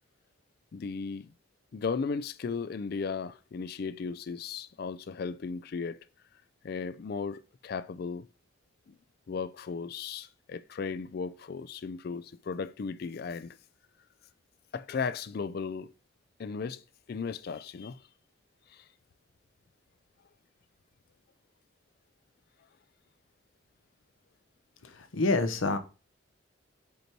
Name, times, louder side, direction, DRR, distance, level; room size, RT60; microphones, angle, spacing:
voice 1, 0.7-1.3 1.7-6.0 6.6-8.3 8.9-9.0 9.3-13.6 14.7-15.9 16.4-16.8 17.1-18.0 18.7-18.8, left 5 dB, 50° left, 0.3 m, -36 dB
voice 2, 24.8-25.8, left 3 dB, 80° left, 0.9 m, -27 dB
5.2 x 4.6 x 4.4 m
head